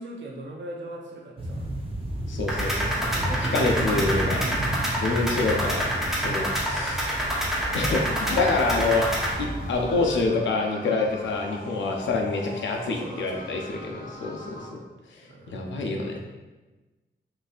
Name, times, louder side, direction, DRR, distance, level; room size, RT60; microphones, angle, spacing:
voice 1, 0.0-1.7 2.5-4.2 6.0-6.2 12.8-13.9 15.2-16.2, right 1 dB, 70° right, -1 dB, 0.7 m, -41 dB
sound 1, 1.4-10.3, right 1 dB, 30° right, 0.6 m, -32 dB
voice 2, 2.3-3.1 3.5-4.4 5.0-7.1 7.7-9.1 9.4-14.8 15.5-16.2, left 3 dB, 85° left, 1 dB, 0.5 m, -27 dB
sound 2, 2.5-9.3, equal, ahead, 1.0 m, -28 dB
sound 3, 7.8-14.7, left 1 dB, 50° left, 1.0 m, -42 dB
3.9 x 2.6 x 2.4 m, 1.2 s
cardioid pair, 55°, 19 cm